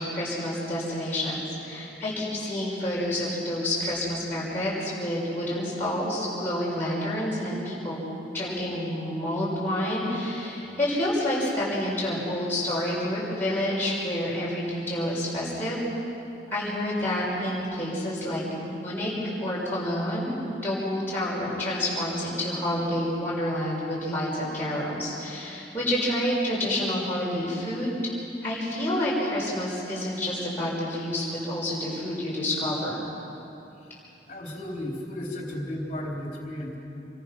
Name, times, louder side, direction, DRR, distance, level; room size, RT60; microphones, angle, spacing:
voice 1, 0.0-8.0 8.3-15.8 16.5-19.1 19.4-27.9 28.4-33.0, left 1 dB, 10° left, -9 dB, 5.9 m, -28 dB
voice 2, 34.3-36.8, left 1 dB, 35° left, -1 dB, 4.0 m, -34 dB
27.5 x 23.5 x 6.3 m, 2.8 s
head